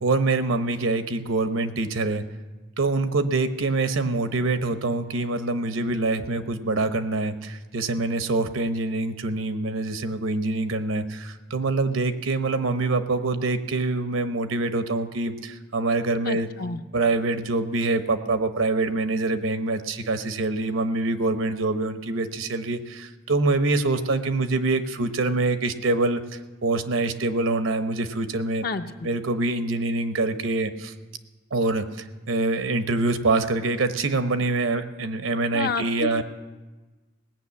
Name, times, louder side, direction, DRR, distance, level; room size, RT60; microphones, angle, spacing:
voice 1, 0.0-2.2 2.8-16.5 16.9-28.6 29.0-30.9 31.5-36.2, right 2 dB, 80° right, 10 dB, 0.9 m, -25 dB
voice 2, 16.2-16.8 28.6-29.1 35.5-36.2, left 5 dB, 50° left, 8 dB, 0.6 m, -30 dB
18.5 x 6.2 x 8.4 m, 1.2 s
head